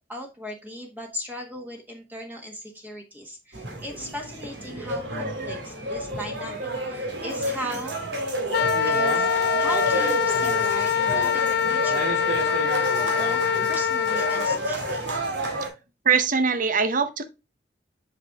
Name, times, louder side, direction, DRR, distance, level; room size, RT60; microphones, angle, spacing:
voice 1, 0.1-7.9 8.8-9.3 9.6-12.2 13.0-13.4 13.7-15.1, equal, 10° right, 1.2 m, -37 dB
sound 1, 3.5-15.7, right 2 dB, 80° right, 2.2 m, -30 dB
voice 2, 5.1-5.6 10.7-10.8 16.0-17.2, right 5 dB, 50° right, 0.9 m, -23 dB
Wind instrument woodwind instrument, 8.5-14.6, left 8 dB, 70° left, 0.3 m, -24 dB
7.5 x 6.0 x 2.3 m
head